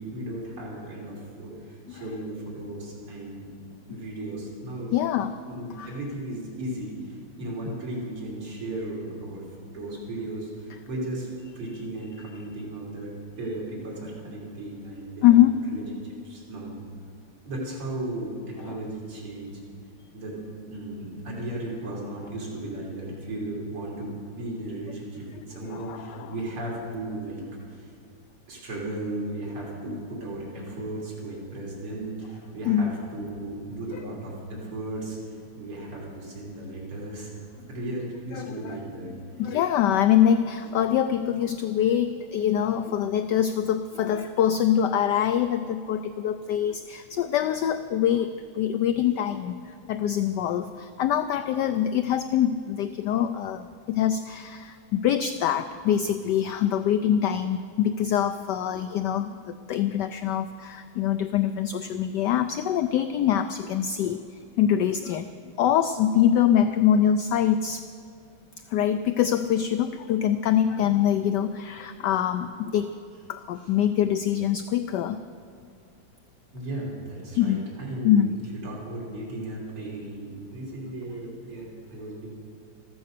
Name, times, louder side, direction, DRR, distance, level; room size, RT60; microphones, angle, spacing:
voice 1, 0.0-3.5 3.9-4.9 5.4-9.4 9.7-11.3 11.6-15.8 16.2-16.8 17.4-19.6 20.1-20.4 20.7-27.4 27.7-27.9 28.5-37.3 37.7-39.1 76.5-78.3 78.6-82.3, right 1 dB, 85° right, -4 dB, 4.3 m, -35 dB
voice 2, 4.9-5.3 5.7-5.9 15.2-15.6 18.6-18.8 25.7-26.3 29.9-30.0 32.7-33.0 33.9-34.0 38.3-38.8 39.1-64.2 64.6-65.2 65.6-67.9 68.7-72.9 73.3-75.2 77.4-77.6 78.0-78.3, left 10 dB, 80° left, 10 dB, 0.9 m, -24 dB
14.0 x 13.5 x 6.7 m, 2.4 s
omnidirectional pair, 2.4 m